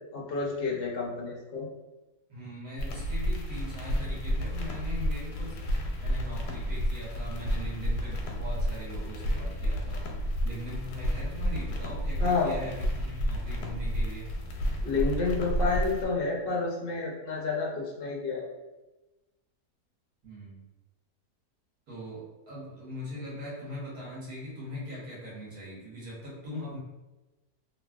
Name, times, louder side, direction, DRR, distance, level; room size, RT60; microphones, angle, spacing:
voice 1, 0.1-1.7 12.2-12.6 14.8-18.5, left 4 dB, 60° left, -2 dB, 0.6 m, -29 dB
voice 2, 2.3-10.1 10.4-14.3 20.2-20.6 21.9-26.8, left 1 dB, 70° right, -7 dB, 1.5 m, -41 dB
sound 1, 2.8-16.0, equal, 85° left, 1.1 m, -31 dB
3.0 x 2.6 x 2.2 m, 1.1 s
omnidirectional pair, 1.6 m